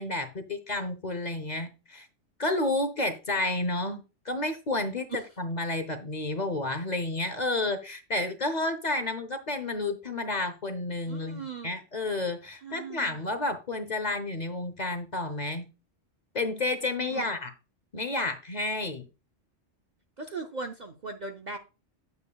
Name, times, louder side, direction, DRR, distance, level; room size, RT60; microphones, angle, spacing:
voice 1, 0.0-2.1 2.4-15.7 16.3-17.5 17.9-19.0, left 2 dB, 40° left, 0.8 m, -31 dB
voice 2, 11.1-11.8 12.6-13.3 17.1-17.3 20.2-21.6, right 4 dB, 45° right, 0.6 m, -39 dB
8.7 x 6.8 x 2.3 m
omnidirectional pair, 1.3 m